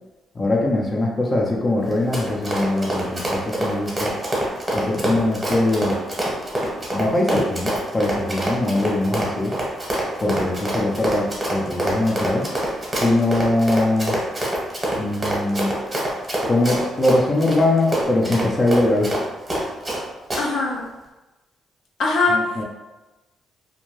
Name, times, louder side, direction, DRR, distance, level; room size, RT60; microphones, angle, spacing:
voice 1, 0.3-4.1 4.7-6.0 6.9-9.5 10.2-12.5 13.0-14.2 15.0-15.7 16.5-19.1 22.3-22.6, left 2 dB, 25° left, -2 dB, 0.4 m, -22 dB
Run, 1.8-20.0 20.3-20.4, right 1 dB, 15° right, 0.9 m, -25 dB
voice 2, 20.4-20.9 22.0-22.6, left 3 dB, 70° left, -1 dB, 0.6 m, -21 dB
2.6 x 2.2 x 3.1 m, 1.1 s
cardioid pair, 130°, 0 cm